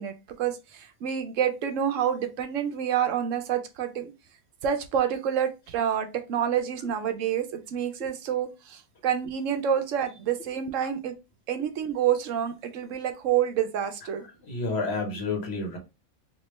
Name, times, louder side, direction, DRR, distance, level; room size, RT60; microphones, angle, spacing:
voice 1, 0.0-4.1 4.6-11.1 11.5-14.2, right 9 dB, 70° right, 0.9 m, -28 dB
voice 2, 14.4-15.8, left 3 dB, 50° left, 1.3 m, -30 dB
3.3 x 2.8 x 3.1 m
omnidirectional pair, 1.5 m